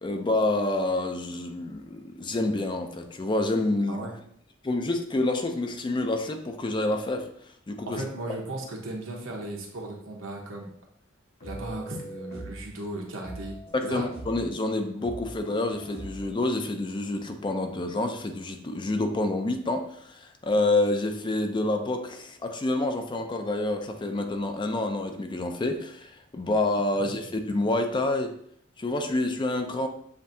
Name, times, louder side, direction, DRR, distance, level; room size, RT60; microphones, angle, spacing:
voice 1, 0.0-4.1 4.6-7.3 7.7-8.0 13.7-28.3 28.8-29.9, left 2 dB, 25° left, 6 dB, 0.4 m, -28 dB
voice 2, 7.9-10.7 11.4-13.5 13.8-14.1, right 1 dB, 80° right, 0 dB, 1.1 m, -36 dB
sound 1, 11.4-12.7 13.2-14.5 15.0-16.6, right 1 dB, 50° left, 1.5 m, -42 dB
7.3 x 2.7 x 2.7 m, 0.65 s
head